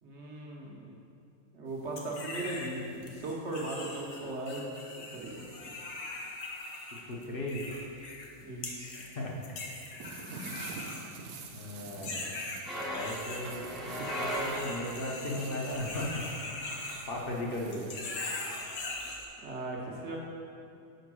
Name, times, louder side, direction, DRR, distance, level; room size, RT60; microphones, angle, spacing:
voice 1, 0.0-0.9 1.5-5.6 8.4-9.0 19.4-20.2, right 2 dB, 55° right, -2 dB, 1.2 m, -38 dB
sound 1, 2.0-2.7 3.0-8.3 8.6-9.1 9.4-11.6 11.9-13.4 14.0-17.4 17.7-19.3, left 2 dB, 75° left, 1.3 m, -41 dB
voice 2, 7.1-7.6 9.1-9.6 11.5-12.3 12.8-13.6 14.2-16.7 17.1-17.9, left 1 dB, 45° left, -3 dB, 1.0 m, -36 dB
sound 2, 10.0-18.9, right 4 dB, 85° right, 1.1 m, -47 dB
sound 3, 12.6-15.3, right 1 dB, ahead, 0.5 m, -37 dB
5.2 x 5.1 x 6.2 m, 2.7 s
omnidirectional pair, 1.5 m